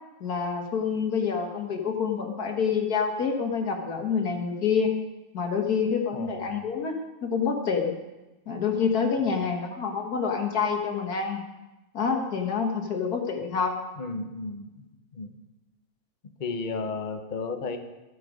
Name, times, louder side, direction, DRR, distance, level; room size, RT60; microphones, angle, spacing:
voice 1, 0.2-4.9 5.3-7.9 8.5-11.4 11.9-13.7, left 6 dB, 85° left, 3 dB, 2.0 m, -27 dB
voice 2, 6.1-6.6 14.0-14.9 15.1-15.3 16.4-17.8, left 4 dB, 35° left, 6 dB, 1.0 m, -33 dB
14.5 x 8.6 x 5.1 m, 1.0 s
omnidirectional pair, 1.6 m